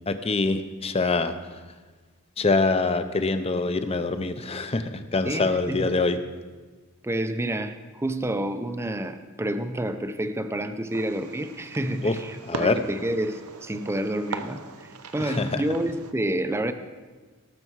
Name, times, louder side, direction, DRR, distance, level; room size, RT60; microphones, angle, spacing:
voice 1, 0.1-1.6 2.4-6.2 12.0-12.2 12.4-12.8 15.2-15.6, left 3 dB, 25° left, 10 dB, 0.6 m, -25 dB
voice 2, 5.2-5.9 7.0-16.7, right 1 dB, 10° right, 9 dB, 0.5 m, -29 dB
Fireworks, 10.9-16.1, right 4 dB, 75° right, 0.8 m, -39 dB
18.0 x 6.8 x 4.7 m, 1.3 s
head